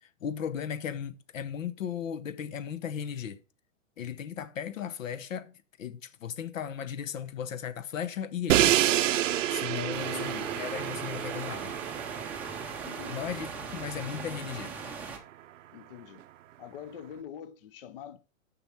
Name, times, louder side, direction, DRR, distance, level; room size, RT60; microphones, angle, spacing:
voice 1, 0.0-3.4 4.0-8.8 9.0-9.2 9.5-11.7 13.1-14.7, left 8 dB, 70° left, 0.9 m, -36 dB
Crash cymbal, 8.5-14.5, right 13 dB, 65° right, 0.6 m, -29 dB
sound 1, 9.3-14.6, left 1 dB, 15° left, 2.0 m, -54 dB
sound 2, 9.9-15.2, right 4 dB, 5° right, 0.6 m, -40 dB
voice 2, 10.0-10.5 12.8-13.3 15.7-16.2 16.6-18.2, left 9 dB, 45° left, 0.6 m, -44 dB
6.8 x 6.0 x 4.4 m
hypercardioid pair, 150°, 40 cm